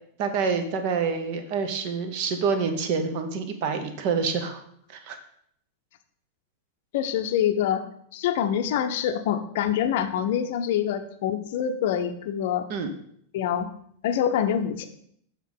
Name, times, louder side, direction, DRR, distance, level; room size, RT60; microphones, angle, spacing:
voice 1, 0.2-4.6 4.9-5.2 12.7-12.9, right 5 dB, 45° right, 8 dB, 0.9 m, -27 dB
voice 2, 6.9-7.9 8.1-12.7 13.3-13.7 14.0-14.9, left 9 dB, 50° left, 8 dB, 0.7 m, -25 dB
7.3 x 3.7 x 5.5 m, 0.67 s
figure-of-eight pair, 90°, 0 cm